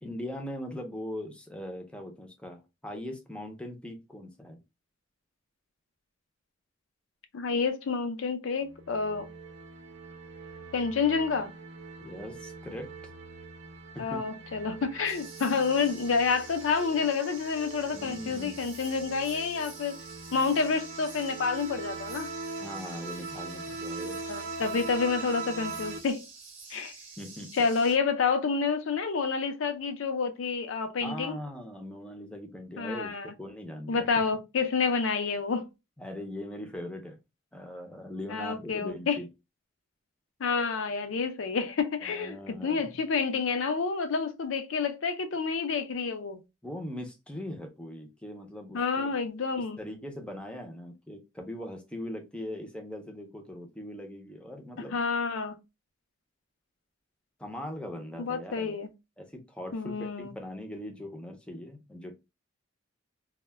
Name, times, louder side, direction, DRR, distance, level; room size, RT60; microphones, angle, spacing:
voice 1, 0.0-4.6 12.0-13.1 13.9-14.2 17.9-18.6 22.6-24.2 27.2-27.5 31.0-34.1 36.0-37.2 37.5-39.3 42.0-43.0 46.6-49.1 49.8-55.0 57.4-58.8 59.2-62.2, left 1 dB, 5° left, 0.5 m, -40 dB
voice 2, 7.3-9.3 10.7-11.5 14.0-20.0 20.3-22.3 24.3-26.2 26.7-26.9 27.6-31.4 32.8-33.3 33.9-35.7 38.3-39.2 40.4-46.4 48.7-49.8 54.9-55.5 58.2-58.9 59.7-60.3, left 5 dB, 85° left, 0.5 m, -29 dB
sound 1, 8.6-26.0, right 4 dB, 60° right, 0.5 m, -42 dB
sound 2, 15.0-28.0, right 4 dB, 30° right, 0.8 m, -48 dB
2.1 x 2.1 x 3.2 m
head